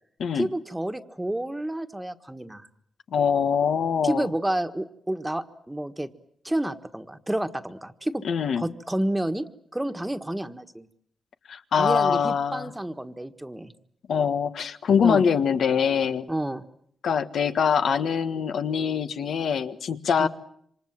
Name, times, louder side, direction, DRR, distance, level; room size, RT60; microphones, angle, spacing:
voice 1, 0.3-2.7 4.0-6.1 6.4-8.2 8.6-9.5 9.7-10.9 11.8-13.7 15.0-15.2 16.3-16.6 20.2-20.3, right 1 dB, 10° right, 8 dB, 1.5 m, -29 dB
voice 2, 3.1-4.3 8.2-8.6 11.5-12.7 14.1-16.3 17.0-20.3, left 7 dB, 80° left, 9 dB, 1.5 m, -23 dB
28.0 x 26.0 x 7.5 m, 0.68 s
cardioid pair, 95°, 0 cm